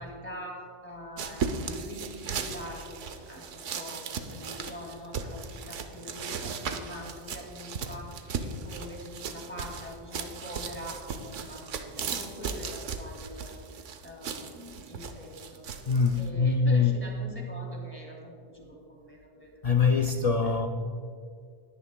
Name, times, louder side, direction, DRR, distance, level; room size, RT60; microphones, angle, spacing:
voice 1, 0.0-3.0 3.2-13.6 14.0-15.6 16.2-19.5 19.9-20.3, equal, 10° left, 2.2 m, -44 dB
sound 1, 1.2-16.3, right 5 dB, 85° right, 1.1 m, -37 dB
voice 2, 15.9-17.2 19.6-20.7, left 5 dB, 80° left, 0.3 m, -24 dB
20.5 x 9.9 x 2.2 m
omnidirectional pair, 1.2 m